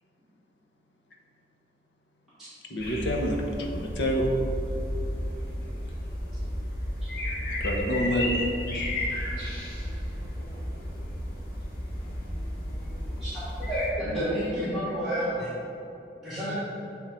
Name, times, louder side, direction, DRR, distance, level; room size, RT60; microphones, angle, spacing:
voice 1, 2.7-4.3 7.6-8.4, equal, 90° left, 1 dB, 0.9 m, -27 dB
sound 1, 2.8-13.9, left 1 dB, 55° left, 1.4 m, -33 dB
voice 2, 10.4-11.0 12.0-12.4 12.7-13.2 14.0-14.3, equal, 35° left, -4 dB, 1.1 m, -43 dB
voice 3, 13.2-15.5 16.2-16.5, equal, ahead, -15 dB, 1.4 m, -30 dB
7.5 x 3.7 x 4.3 m, 2.9 s
head